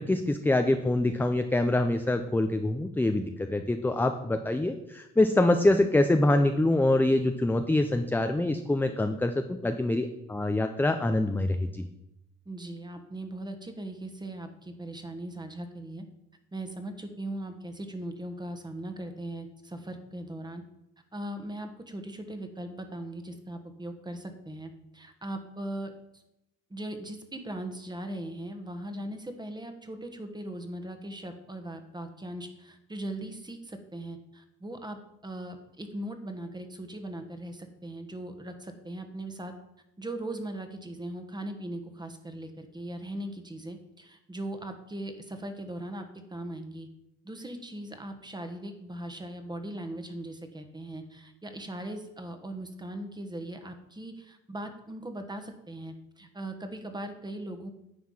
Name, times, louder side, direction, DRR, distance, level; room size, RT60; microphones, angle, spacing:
voice 1, 0.0-11.9, left 2 dB, 5° left, 7 dB, 0.5 m, -25 dB
voice 2, 12.4-16.0 16.5-20.6 21.1-26.2 26.7-39.5 40.0-46.9 47.2-57.7, right 1 dB, 15° right, 7 dB, 1.2 m, -39 dB
9.5 x 4.7 x 5.5 m, 0.88 s
cardioid pair, 90°, 30 cm